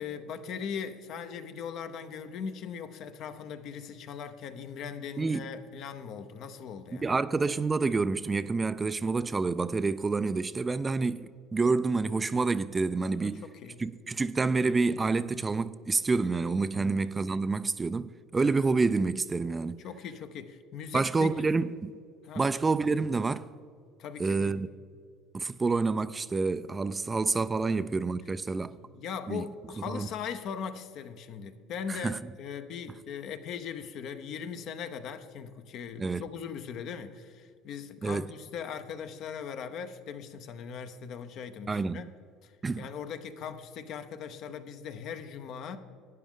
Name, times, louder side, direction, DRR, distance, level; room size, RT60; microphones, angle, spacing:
voice 1, 0.0-7.2 13.1-13.8 16.7-17.0 19.8-21.3 22.2-22.5 24.0-24.6 27.6-27.8 28.6-42.1 42.4-45.8, left 7 dB, 60° left, 0.8 m, -40 dB
voice 2, 6.9-13.4 13.8-19.8 20.9-21.9 22.4-23.5 24.2-24.7 25.3-28.8 29.3-29.5 29.9-30.1 31.9-32.2 36.0-36.2 38.0-38.3 41.7-42.1 42.6-42.9, right 4 dB, 20° right, 0.3 m, -28 dB
12.0 x 9.4 x 3.8 m
supercardioid pair, 100°, 0 cm